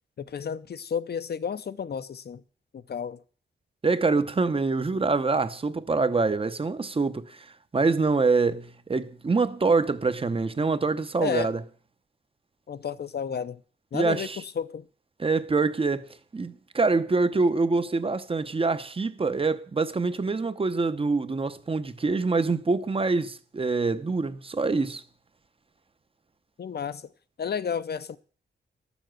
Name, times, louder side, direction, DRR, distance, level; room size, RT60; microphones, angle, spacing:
voice 1, 0.2-2.4 2.7-3.2 11.2-11.5 12.7-13.6 13.9-14.9 26.6-27.0 27.4-28.2, left 7 dB, 60° left, 0.7 m, -32 dB
voice 2, 3.8-11.6 13.9-14.4 15.2-25.0, right 3 dB, 30° right, 0.8 m, -25 dB
12.5 x 7.1 x 7.6 m
wide cardioid pair, 100°, 19 cm